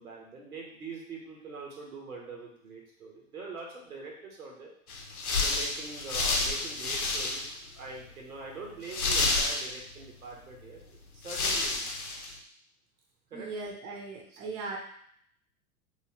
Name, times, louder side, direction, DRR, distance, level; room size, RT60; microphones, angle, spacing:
voice 1, 0.0-4.7 5.4-12.0 13.3-13.5 14.3-14.4, right 3 dB, 80° right, -1 dB, 1.2 m, -43 dB
sound 1, 4.9-7.7 8.0-8.1 8.8-10.0 10.8-10.9 11.2-12.3, left 3 dB, 85° left, 0.8 m, -29 dB
voice 2, 13.3-14.8, right 3 dB, 30° right, -1 dB, 0.8 m, -38 dB
3.1 x 3.0 x 2.9 m, 0.67 s
hypercardioid pair, 100°, 42 cm